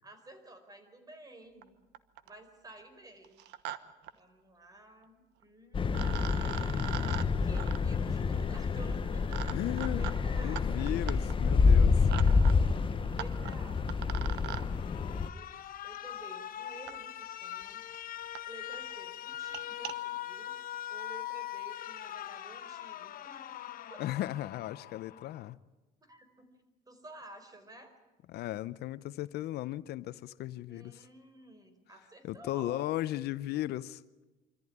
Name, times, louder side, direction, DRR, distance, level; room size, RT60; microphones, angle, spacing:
voice 1, 0.0-1.8 2.2-3.4 4.1-6.1 7.3-9.7 9.9-10.8 11.8-12.5 13.1-15.5 15.8-17.8 18.5-23.5 23.9-24.0 26.0-26.5 26.9-27.9 30.7-32.8, right 2 dB, 20° right, 4.7 m, -52 dB
sound 1, 1.6-1.7 1.9-2.4 3.2-3.8 4.0-4.1 5.4-5.5 5.9-14.6 15.9-16.0 16.9-17.0 17.6-17.7 17.9-18.0 18.3-18.4 18.7-18.9 19.3-19.9, right 12 dB, 85° right, 1.2 m, -43 dB
sound 2, 5.7-15.3, left 5 dB, 30° left, 0.9 m, -28 dB
voice 2, 9.5-10.1 10.4-12.1 24.0-25.6 28.3-31.0 32.2-34.0, left 15 dB, 75° left, 0.7 m, -36 dB
Alarm, 14.5-25.5, left 12 dB, 55° left, 1.1 m, -42 dB
25.0 x 14.5 x 10.0 m
cardioid pair, 110°, 17 cm